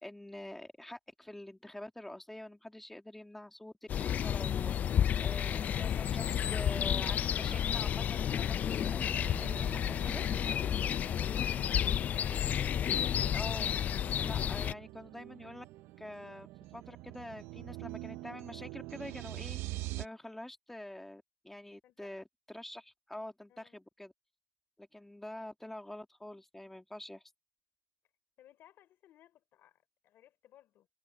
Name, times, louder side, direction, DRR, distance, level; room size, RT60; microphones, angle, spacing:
voice 1, 0.0-10.2 13.3-15.7 16.0-19.6 20.0-24.1 24.8-27.2, left 1 dB, 5° left, 1.9 m, -46 dB
sound 1, 3.9-14.7, left 9 dB, 35° left, 0.3 m, -31 dB
sound 2, 9.0-20.1, right 18 dB, 70° right, 0.6 m, -46 dB
voice 2, 11.2-12.3 21.8-22.2 23.5-23.7 28.4-30.9, left 12 dB, 55° left, 3.6 m, -62 dB
cardioid pair, 140°, 4 cm